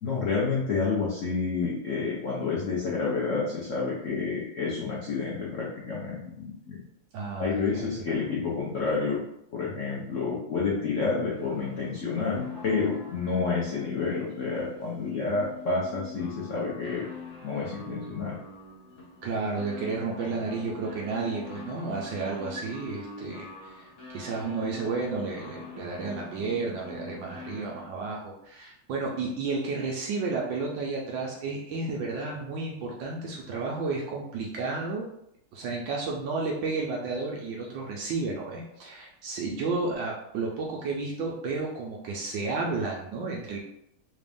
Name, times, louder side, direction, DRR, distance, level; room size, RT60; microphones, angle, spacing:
voice 1, 0.0-6.8 7.4-9.2 9.5-17.0 17.4-18.4, left 4 dB, 85° left, -5 dB, 0.6 m, -29 dB
voice 2, 7.1-7.9 19.2-35.1 35.5-43.6, right 3 dB, 70° right, -2 dB, 1.2 m, -32 dB
sound 1, 11.3-28.1, left 4 dB, 50° left, 1.0 m, -43 dB
3.8 x 2.5 x 3.5 m, 0.76 s
omnidirectional pair, 2.4 m